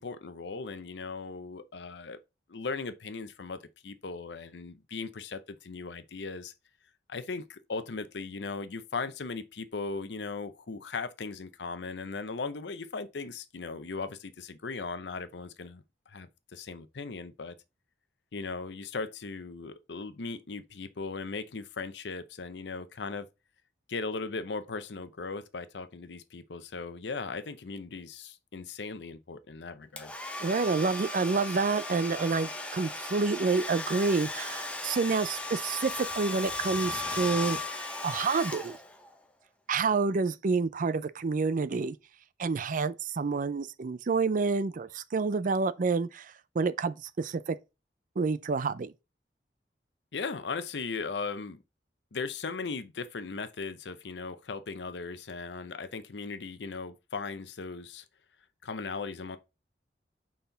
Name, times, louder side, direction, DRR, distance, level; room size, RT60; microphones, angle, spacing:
voice 1, 0.0-2.2 2.5-6.5 7.1-17.6 18.3-23.3 23.9-30.1 50.1-51.6 52.1-58.0 58.6-59.4, left 4 dB, 80° left, 0.7 m, -38 dB
Domestic sounds home sounds, 30.0-39.1, left 2 dB, 5° left, 0.9 m, -36 dB
voice 2, 30.4-37.6 38.0-38.8 39.7-42.0 42.4-46.3 46.6-47.6 48.2-48.9, right 4 dB, 50° right, 0.4 m, -28 dB
5.7 x 4.3 x 3.9 m
head